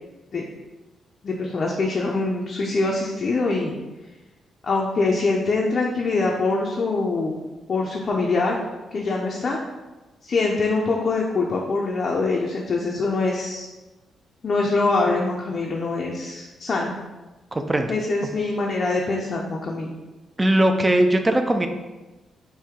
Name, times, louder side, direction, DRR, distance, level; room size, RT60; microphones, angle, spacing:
voice 1, 1.2-3.8 4.6-7.4 7.7-8.6 8.9-9.6 10.2-13.7 14.4-16.9 17.9-19.9, left 3 dB, 45° left, -2 dB, 0.5 m, -24 dB
voice 2, 17.5-17.9 20.4-21.7, right 1 dB, 15° right, 6 dB, 0.4 m, -19 dB
4.6 x 2.6 x 3.6 m, 1.1 s
cardioid pair, 120°, 0 cm